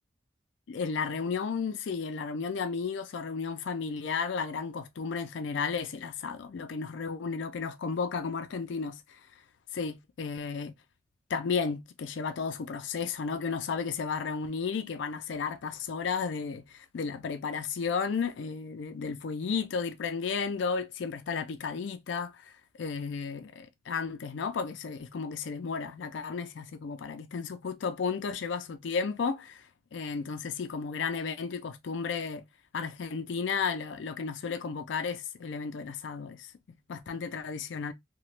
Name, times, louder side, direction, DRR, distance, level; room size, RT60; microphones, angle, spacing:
voice 1, 0.7-9.2 9.7-10.7 11.3-22.5 22.8-32.4 32.7-36.5 36.9-37.9, left 5 dB, 90° left, 0.4 m, -33 dB
2.9 x 2.2 x 3.1 m
head